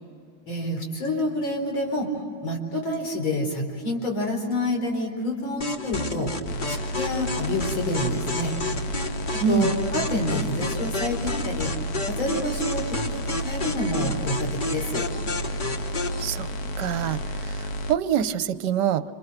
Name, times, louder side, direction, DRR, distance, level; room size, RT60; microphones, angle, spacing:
voice 1, 0.5-2.1 2.4-6.3 6.7-8.5 9.3-11.7 12.1-15.1, left 1 dB, 80° left, 2 dB, 5.0 m, -28 dB
sound 1, 5.6-16.2, left 2 dB, 25° left, 1.4 m, -32 dB
sound 2, 6.5-18.0, equal, 55° left, 1.4 m, -31 dB
voice 2, 9.4-9.7 16.2-16.5 16.8-19.0, right 9 dB, 65° right, 13 dB, 1.4 m, -25 dB
29.0 x 26.5 x 6.6 m, 2.3 s
omnidirectional pair, 2.2 m